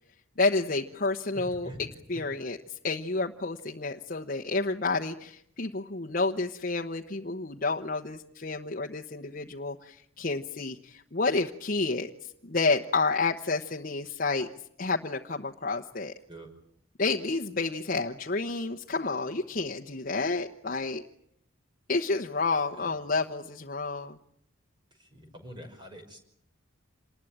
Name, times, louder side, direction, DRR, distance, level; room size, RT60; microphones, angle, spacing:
voice 1, 0.4-2.6 2.8-12.1 12.4-14.5 14.8-16.1 17.0-21.0 21.9-24.2, left 3 dB, 45° left, 1 dB, 1.1 m, -30 dB
voice 2, 1.3-2.0 16.3-16.5 22.7-23.2 25.0-26.2, equal, 25° right, 4 dB, 5.6 m, -45 dB
27.5 x 20.5 x 8.8 m, 0.71 s
head